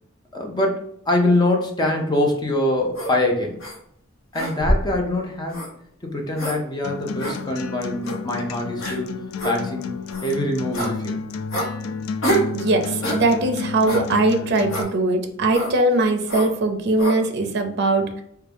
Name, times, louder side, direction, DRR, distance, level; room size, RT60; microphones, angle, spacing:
voice 1, 0.3-3.6 4.3-5.6 6.0-11.2, left 1 dB, 20° left, 1 dB, 0.5 m, -24 dB
sound 1, 2.9-3.1 3.6-3.8 4.3-4.9 5.5-5.7 6.4-6.6 7.2-7.4 8.0-8.2 8.8-9.0 9.4-9.6 10.1-10.3 10.7-10.9 11.5-11.7 12.2-12.5 13.0-13.2 13.9-14.1 14.7-14.9 15.5-15.7 16.3-16.5 17.0-17.2, right 1 dB, 65° left, 1.0 m, -25 dB
Acoustic guitar, 6.8-14.8, left 5 dB, 85° left, 0.3 m, -31 dB
voice 2, 12.5-18.2, right 2 dB, 55° right, 5 dB, 0.5 m, -21 dB
3.5 x 2.2 x 3.3 m, 0.71 s
head